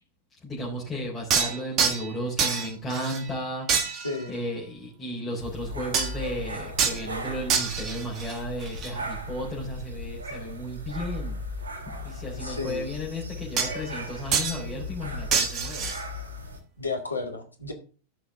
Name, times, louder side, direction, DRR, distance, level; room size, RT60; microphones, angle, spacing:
voice 1, 0.4-11.4 11.9-15.9, equal, 20° left, -6 dB, 3.9 m, -34 dB
sound 1, 1.3-2.1 2.4-3.3 3.7-4.3 5.9-6.3 6.8-7.0 7.5-8.9 13.6-14.0 14.3-14.6 15.3-16.0, right 6 dB, 35° right, 1.7 m, -27 dB
sound 2, 5.4-16.6, equal, 70° right, 2.9 m, -37 dB
voice 2, 12.4-12.8 16.8-17.7, left 3 dB, 85° left, 3 dB, 2.0 m, -32 dB
13.5 x 6.2 x 3.7 m, 0.37 s
figure-of-eight pair, 90°, 0 cm